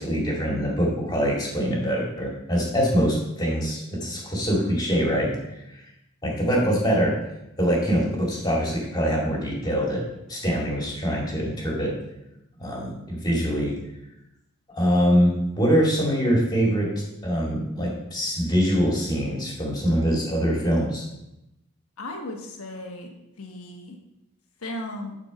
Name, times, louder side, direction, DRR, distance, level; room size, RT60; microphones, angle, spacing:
voice 1, 0.0-5.3 6.2-7.1 7.6-10.0 10.3-11.9 12.6-13.7 14.8-21.1, equal, 20° left, -3 dB, 2.2 m, -24 dB
voice 2, 22.0-24.0 24.6-25.2, left 1 dB, 85° left, 2 dB, 1.3 m, -36 dB
10.5 x 4.4 x 5.2 m, 0.88 s
head